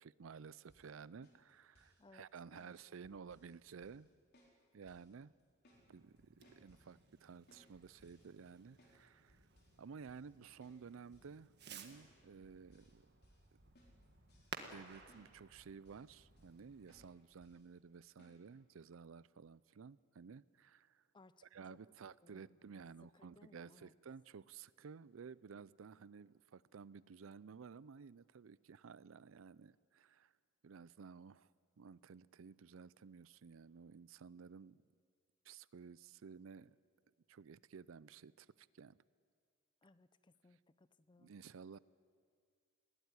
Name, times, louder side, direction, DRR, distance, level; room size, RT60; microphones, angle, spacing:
voice 1, 0.0-4.1 4.7-5.3 5.9-9.5 9.8-13.2 14.7-21.0 21.5-30.3 30.6-31.5 31.8-34.8 35.4-36.8 37.3-39.0 41.2-41.8, right 6 dB, 80° right, 0.5 m, -54 dB
sound 1, 0.7-0.9 1.2-2.0 2.5-2.7 3.0-3.6 3.8-4.1 4.3-4.6 4.9-5.1 5.4-5.8 6.2-6.9 7.5-9.0 9.3-9.8 10.1-10.3 10.6-10.8 11.1-11.4 11.9-12.1 12.4-12.9 13.2-13.5 13.8-14.8 15.1-15.3 15.6-16.1 16.4-16.6 16.9-17.1 17.4-17.6 18.2-18.4, equal, 55° left, 4.2 m, -69 dB
Fireworks, 5.7-17.1, right 5 dB, 55° right, 1.7 m, -57 dB
voice 2, 22.2-22.6 23.1-23.9 39.8-41.3, left 2 dB, 25° left, 0.5 m, -65 dB
21.0 x 16.5 x 9.6 m
head